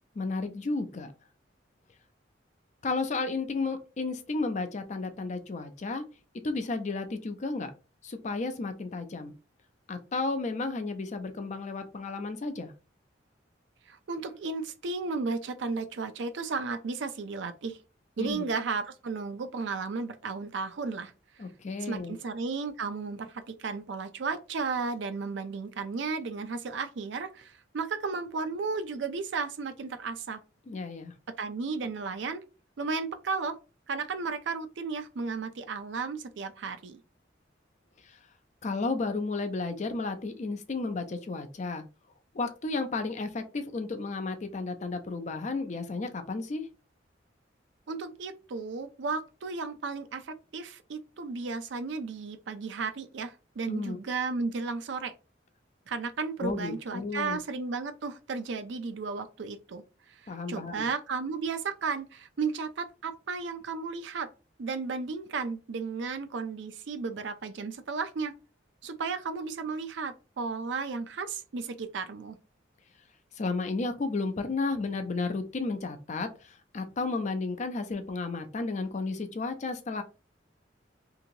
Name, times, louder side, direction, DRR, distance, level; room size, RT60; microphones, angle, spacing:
voice 1, 0.2-1.1 2.8-6.0 6.4-7.7 8.0-9.3 9.9-12.7 18.2-18.5 21.4-22.2 30.7-31.1 38.0-38.2 38.6-41.9 42.3-46.7 53.7-54.0 56.4-57.4 60.3-60.9 73.4-80.0, left 3 dB, 40° left, 0.4 m, -33 dB
voice 2, 13.9-17.8 18.2-21.1 21.8-30.4 31.4-32.4 32.8-33.6 33.9-37.0 47.9-55.1 55.9-59.8 60.1-64.3 64.6-68.3 68.8-72.4, right 4 dB, 65° right, 0.4 m, -34 dB
2.9 x 2.8 x 2.6 m
head